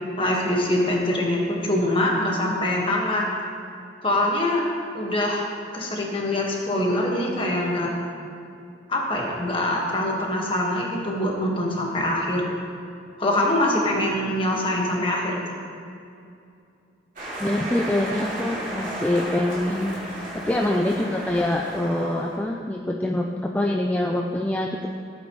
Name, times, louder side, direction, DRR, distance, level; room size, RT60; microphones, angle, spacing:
voice 1, 0.2-3.2 4.0-4.6 4.9-5.5 5.7-7.9 8.9-12.5 13.2-15.6, left 1 dB, 30° left, -2 dB, 1.6 m, -24 dB
sound 1, 17.2-22.4, right 1 dB, 45° right, 2.5 m, -33 dB
voice 2, 17.4-24.9, left 1 dB, 10° left, 0 dB, 0.4 m, -25 dB
15.5 x 8.4 x 3.2 m, 2.6 s
head